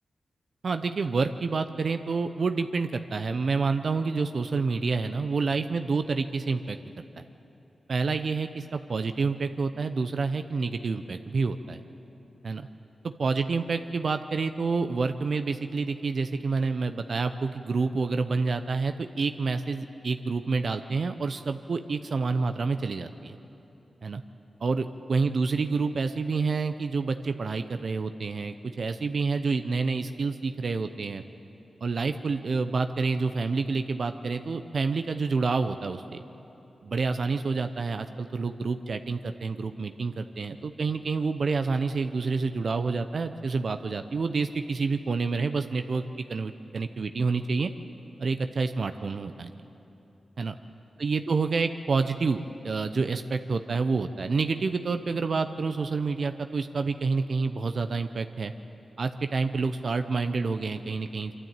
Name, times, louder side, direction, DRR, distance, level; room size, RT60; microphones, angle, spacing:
voice 1, 0.6-6.8 7.2-7.3 7.9-11.8 12.4-12.7 13.0-23.4 24.0-24.2 24.6-31.2 31.8-36.2 36.8-46.0 46.3-47.7 48.2-49.5 50.4-50.5 51.0-58.5 59.0-61.3, right 4 dB, 65° right, 8 dB, 0.7 m, -28 dB
24.5 x 12.5 x 9.0 m, 3.0 s
cardioid pair, 55°, 0 cm